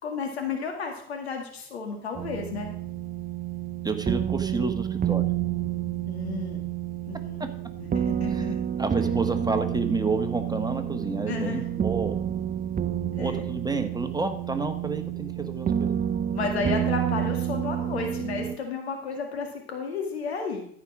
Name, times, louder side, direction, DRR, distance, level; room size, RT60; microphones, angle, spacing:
voice 1, 0.0-2.7 6.1-6.7 7.1-7.5 7.8-8.6 11.3-11.6 13.1-13.5 16.3-20.7, left 5 dB, 85° left, 4 dB, 2.1 m, -32 dB
sound 1, 2.1-18.6, right 9 dB, 30° right, 0.8 m, -29 dB
voice 2, 3.8-5.3 8.3-8.4 8.8-12.1 13.2-15.9, right 3 dB, 10° right, 6 dB, 1.6 m, -30 dB
13.5 x 5.0 x 6.2 m, 0.62 s
hypercardioid pair, 65°, 31 cm